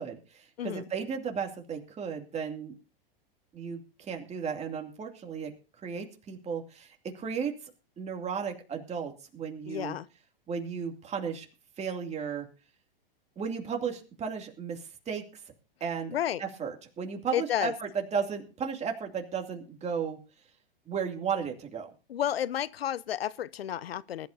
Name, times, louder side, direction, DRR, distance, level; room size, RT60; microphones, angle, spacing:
voice 1, 0.0-2.8 3.5-5.5 5.8-7.5 8.0-9.9 10.5-11.5 11.8-12.5 13.4-15.2 15.8-20.2 20.9-21.9, right 6 dB, 20° right, 2.6 m, -34 dB
voice 2, 9.7-10.1 16.1-16.4 17.3-17.7 22.1-24.3, left 11 dB, 90° left, 0.6 m, -31 dB
21.5 x 11.5 x 2.7 m
hypercardioid pair, 115°, 29 cm